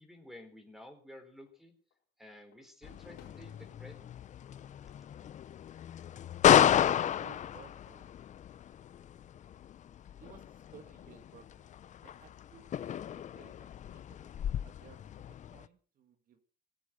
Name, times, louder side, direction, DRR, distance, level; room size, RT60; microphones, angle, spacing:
voice 1, 0.0-1.7 2.2-4.1, left 1 dB, ahead, 5 dB, 4.2 m, -52 dB
Fireworks, 1.3-2.0 2.5-5.6 6.0-6.5 8.1-8.9, left 9 dB, 75° left, 4.3 m, -65 dB
sound 1, 2.8-15.6, left 10 dB, 45° left, 0.7 m, -32 dB
voice 2, 6.4-8.1 10.2-11.7 12.0-14.3 14.6-16.4, right 8 dB, 55° right, 8 dB, 1.8 m, -58 dB
19.5 x 8.4 x 7.8 m, 0.44 s
cardioid pair, 110°, 17 cm